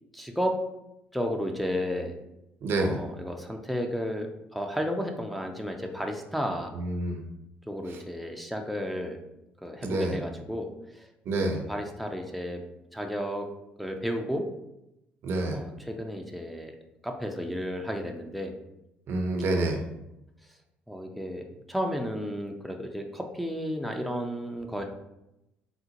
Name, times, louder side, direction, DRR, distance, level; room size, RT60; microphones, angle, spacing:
voice 1, 0.1-0.5 1.1-2.2 2.8-6.7 7.7-9.2 9.6-10.7 11.0-11.1 11.7-12.6 12.9-13.5 13.8-14.5 15.5-16.7 17.0-18.5 20.9-24.8, equal, ahead, 2 dB, 0.4 m, -32 dB
voice 2, 2.6-3.0 6.7-7.2 9.8-10.2 11.3-11.6 15.2-15.6 19.1-19.8, right 2 dB, 65° right, 3 dB, 0.6 m, -27 dB
3.7 x 2.1 x 2.8 m, 0.89 s
supercardioid pair, 70°, 4 cm